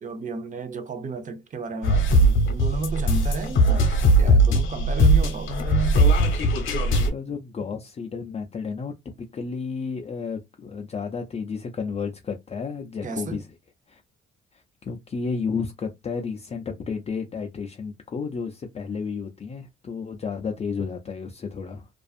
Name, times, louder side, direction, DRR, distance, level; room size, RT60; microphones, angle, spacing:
voice 1, 0.0-6.0 13.0-13.4, right 3 dB, 40° right, 0.6 m, -32 dB
sound 1, 1.8-7.1, right 1 dB, 75° left, 0.9 m, -19 dB
voice 2, 7.0-13.5 13.9-14.0 14.5-21.9, left 5 dB, 30° left, 0.5 m, -32 dB
2.5 x 2.3 x 2.4 m
cardioid pair, 90°, 20 cm